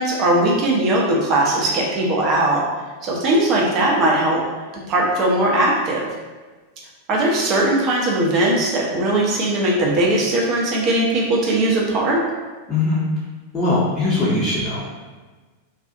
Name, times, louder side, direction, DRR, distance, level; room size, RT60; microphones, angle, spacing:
voice 1, 0.0-2.6 3.0-4.4 4.9-6.1 7.1-12.2, right 1 dB, 35° right, -3 dB, 0.6 m, -19 dB
voice 2, 12.7-13.0 13.5-15.0, left 2 dB, 20° left, -9 dB, 0.6 m, -21 dB
2.5 x 2.3 x 2.5 m, 1.3 s
figure-of-eight pair, 90°, 0 cm